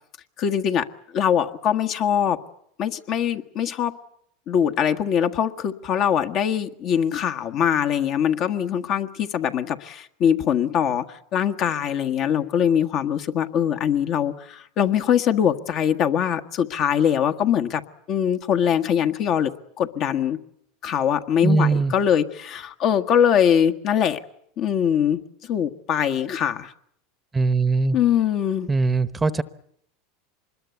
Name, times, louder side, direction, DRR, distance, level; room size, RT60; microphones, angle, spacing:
voice 1, 0.4-0.9 1.1-2.4 2.8-3.9 4.5-11.0 11.3-17.8 18.1-20.4 20.8-24.2 24.6-25.2 25.5-26.7 27.9-28.7, left 9 dB, 50° left, 1.5 m, -22 dB
voice 2, 21.4-21.9 27.3-28.0 28.7-29.4, right 3 dB, 15° right, 1.0 m, -20 dB
25.0 x 21.0 x 8.3 m
hypercardioid pair, 105°, 0 cm